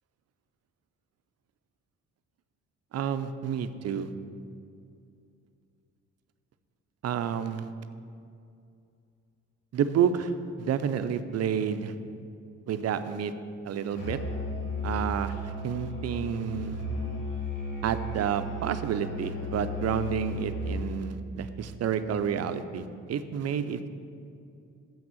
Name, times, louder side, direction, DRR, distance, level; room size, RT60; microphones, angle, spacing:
voice 1, 2.9-4.1 7.0-7.7 9.7-10.3 10.6-11.9 12.7-13.3 13.6-14.2 14.8-16.8 17.8-23.9, right 8 dB, 55° right, 11 dB, 0.6 m, -30 dB
Musical instrument, 13.9-21.0, left 1 dB, 80° left, 2.2 m, -34 dB
7.2 x 6.0 x 7.6 m, 2.5 s
cardioid pair, 90°, 30 cm